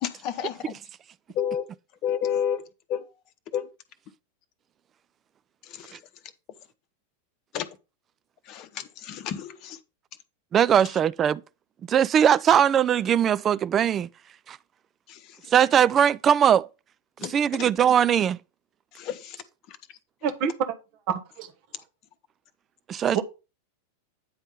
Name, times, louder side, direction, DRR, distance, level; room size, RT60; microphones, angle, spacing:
voice 1, 0.0-0.7 1.3-1.7 2.0-3.1 3.5-3.7 5.6-6.0 7.5-7.7 8.5-9.8 15.1-15.5 17.2-17.7 18.9-19.8, left 9 dB, 40° left, 0.8 m, -31 dB
voice 2, 10.5-11.4 11.9-14.1 14.5-14.6 15.5-16.7 17.3-18.4 22.9-23.2, right 9 dB, 25° right, 0.3 m, -20 dB
voice 3, 20.2-20.8 21.1-21.5 23.1-23.2, right 7 dB, 45° right, 1.1 m, -27 dB
9.3 x 3.6 x 5.4 m
figure-of-eight pair, 90°, 0 cm